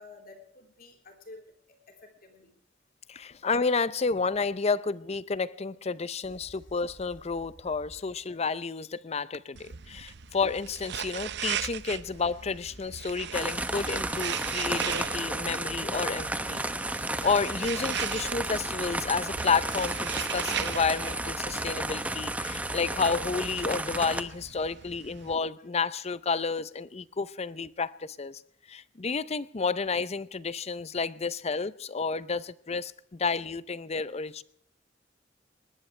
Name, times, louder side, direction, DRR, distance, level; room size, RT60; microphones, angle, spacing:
voice 1, 0.0-2.5, left 2 dB, 50° left, 3.9 m, -51 dB
voice 2, 3.1-28.4 28.7-34.4, left 4 dB, 35° left, 0.6 m, -31 dB
sound 1, 6.2-8.3 10.2-15.4 17.4-21.5, equal, 80° left, 2.5 m, -52 dB
sound 2, 9.6-25.4, right 10 dB, 65° right, 0.6 m, -39 dB
sound 3, 13.3-24.2, right 2 dB, 10° right, 0.9 m, -32 dB
20.5 x 19.5 x 3.3 m
head